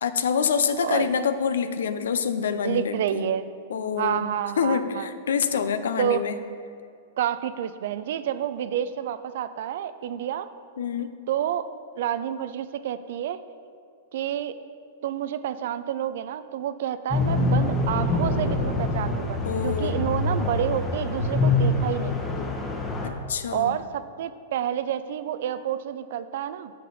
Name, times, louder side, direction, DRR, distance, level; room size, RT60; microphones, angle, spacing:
voice 1, 0.0-3.3 3.7-4.2 4.6-6.4 10.8-11.2 19.4-20.0 23.3-23.7, left 6 dB, 80° left, 11 dB, 0.5 m, -26 dB
voice 2, 2.6-3.5 4.0-5.1 6.0-6.2 7.2-10.5 11.3-11.7 12.0-13.4 14.1-14.5 15.0-22.2 23.5-26.7, right 10 dB, 65° right, 13 dB, 0.4 m, -29 dB
sound 1, 17.1-23.1, left 2 dB, 20° left, 1.1 m, -25 dB
7.4 x 6.5 x 4.1 m, 2.4 s
hypercardioid pair, 115°, 0 cm